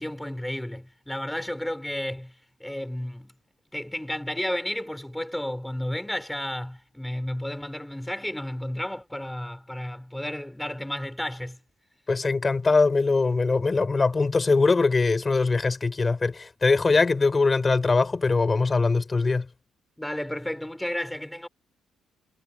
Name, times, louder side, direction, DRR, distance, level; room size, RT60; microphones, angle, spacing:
voice 1, 0.0-3.3 3.7-11.6 20.0-21.5, left 1 dB, 5° left, 4.9 m, -32 dB
voice 2, 12.1-19.5, left 3 dB, 30° left, 4.9 m, -22 dB
cardioid pair, 90°, 0 cm